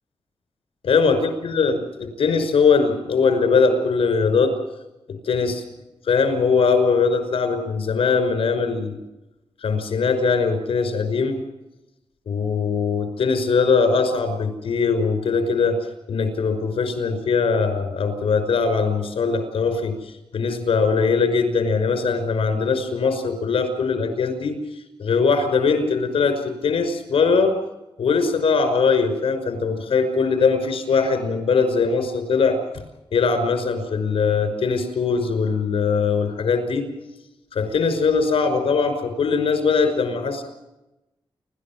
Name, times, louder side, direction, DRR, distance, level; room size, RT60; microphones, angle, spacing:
voice 1, 0.8-1.2 1.4-4.5 5.2-5.6 6.0-9.0 9.6-11.4 12.3-15.8 16.1-19.9 20.3-24.6 25.0-27.6 28.0-32.6 33.1-36.9 37.5-40.4, left 5 dB, 85° left, 8 dB, 5.7 m, -21 dB
30.0 x 13.0 x 7.5 m, 0.93 s
wide cardioid pair, 125°, 9 cm